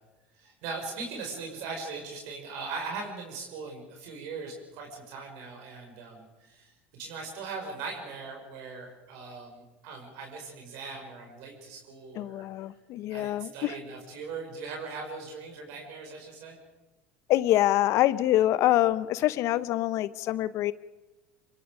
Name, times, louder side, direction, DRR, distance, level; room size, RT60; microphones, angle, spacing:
voice 1, 0.3-12.4 13.1-16.6, right 4 dB, 65° right, 1 dB, 5.6 m, -40 dB
voice 2, 12.1-13.7 17.3-20.7, left 14 dB, 55° left, 16 dB, 0.9 m, -25 dB
25.5 x 22.5 x 5.1 m, 1.1 s
hypercardioid pair, 80°, 6 cm